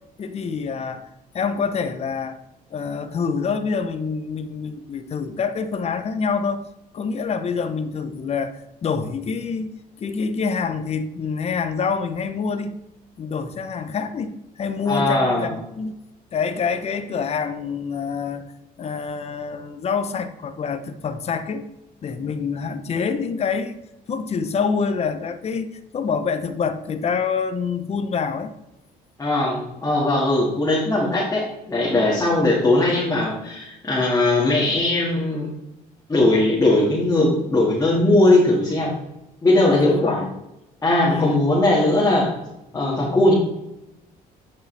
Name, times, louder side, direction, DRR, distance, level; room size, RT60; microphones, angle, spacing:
voice 1, 0.2-1.0 1.3-2.4 2.7-6.6 6.9-9.7 10.0-12.8 13.2-16.0 16.3-18.5 18.8-21.6 22.0-23.8 24.1-28.5 39.7-40.3 41.0-41.4 42.7-43.1, left 5 dB, 40° left, 9 dB, 0.8 m, -26 dB
voice 2, 14.9-15.5 29.2-35.5 36.1-38.9 39.4-40.3 40.8-42.3 42.7-43.3, left 2 dB, 20° left, -6 dB, 2.0 m, -19 dB
9.1 x 5.4 x 3.4 m, 0.92 s
cardioid pair, 110°, 17 cm